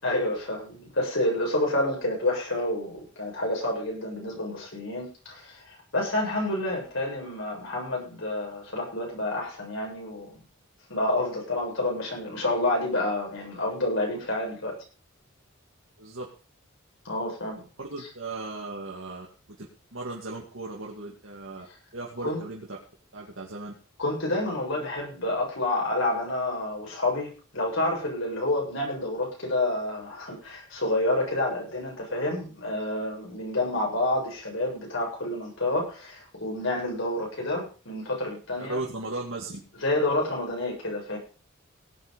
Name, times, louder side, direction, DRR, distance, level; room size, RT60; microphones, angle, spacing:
voice 1, 0.0-10.4 10.9-14.8 17.0-17.7 22.2-22.4 24.0-38.8 39.8-41.2, left 1 dB, 70° left, -1 dB, 7.7 m, -29 dB
voice 2, 17.8-19.3 19.6-19.7 19.9-21.7 21.9-22.8 23.1-23.7 38.6-39.6, right 2 dB, 70° right, -2 dB, 2.5 m, -36 dB
18.5 x 8.0 x 5.3 m, 0.36 s
head